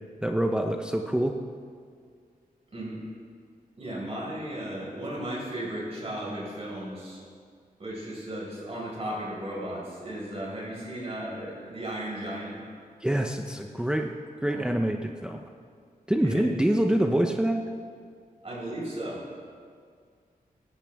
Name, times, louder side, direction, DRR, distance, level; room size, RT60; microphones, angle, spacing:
voice 1, 0.2-1.4 13.0-14.1 14.4-15.4 16.1-17.6, right 1 dB, 5° right, 3 dB, 0.6 m, -26 dB
voice 2, 2.7-3.0 3.8-7.2 7.8-12.6 14.5-14.7 16.2-16.4 18.4-19.2, right 1 dB, 40° right, -5 dB, 4.8 m, -35 dB
19.0 x 16.5 x 3.5 m, 2.1 s
wide cardioid pair, 135°, 15 cm